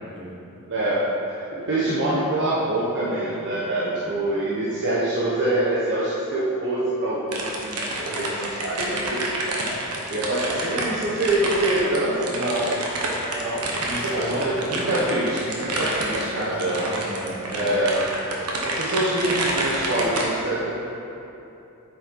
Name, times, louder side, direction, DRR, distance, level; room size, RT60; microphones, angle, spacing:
voice 1, 0.1-0.7 1.5-1.7 4.0-4.3 13.8-14.9 15.7-17.7, equal, 20° right, -4 dB, 1.5 m, -36 dB
voice 2, 0.7-1.1 1.3-7.9 8.2-9.2 10.1-12.7 13.3-13.6 14.0-16.8 17.5-18.1 18.6-20.8, right 1 dB, 55° right, -8 dB, 1.2 m, -25 dB
sound 1, 7.3-20.3, right 2 dB, 90° right, 1.3 m, -28 dB
8.7 x 6.8 x 4.7 m, 2.8 s
head